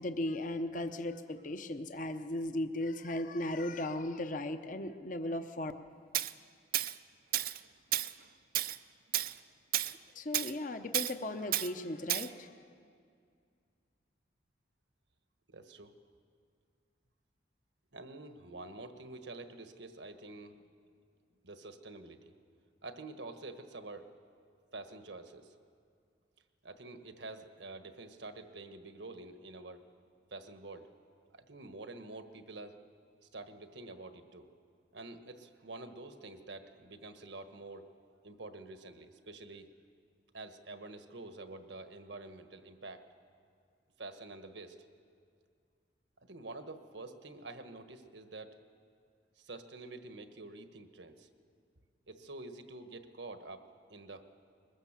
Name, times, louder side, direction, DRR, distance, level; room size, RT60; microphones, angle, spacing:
voice 1, 0.0-5.7 10.1-12.5, left 1 dB, 45° left, 8 dB, 0.8 m, -36 dB
Tools, 6.1-6.3 6.7-6.9 7.3-7.6 7.9-8.1 8.5-8.8 9.1-9.3 9.7-9.9 10.3-10.5 10.9-11.1 11.5-11.7 12.1-12.3, right 13 dB, 50° right, 0.5 m, -32 dB
voice 2, 15.5-16.0 17.9-20.6 21.4-22.3 22.8-24.1 24.7-25.5 26.6-29.8 30.3-30.9 31.3-32.7 33.3-34.5 34.9-37.9 38.2-39.7 40.3-43.1 44.0-44.8 46.2-48.6 49.4-51.3 52.1-54.3, right 2 dB, 75° right, 8 dB, 1.4 m, -47 dB
21.5 x 20.0 x 7.4 m, 2.3 s
head